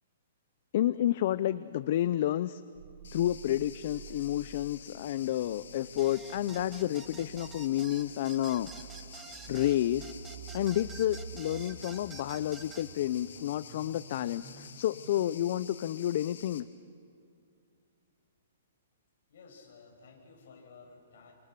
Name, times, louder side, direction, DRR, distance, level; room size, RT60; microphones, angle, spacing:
voice 1, 0.7-2.6 3.1-8.7 9.5-10.1 10.5-16.6, left 12 dB, 45° left, 15 dB, 0.5 m, -30 dB
sound 1, 2.8-16.5, right 6 dB, 60° right, 1.9 m, -50 dB
sound 2, 3.0-16.6, left 7 dB, 80° left, 2.1 m, -51 dB
sound 3, 6.0-12.9, right 6 dB, 10° right, 1.0 m, -49 dB
voice 2, 19.3-21.3, left 4 dB, 65° left, 1 dB, 7.2 m, -54 dB
29.0 x 26.5 x 6.8 m, 2.5 s
hypercardioid pair, 160°, 0 cm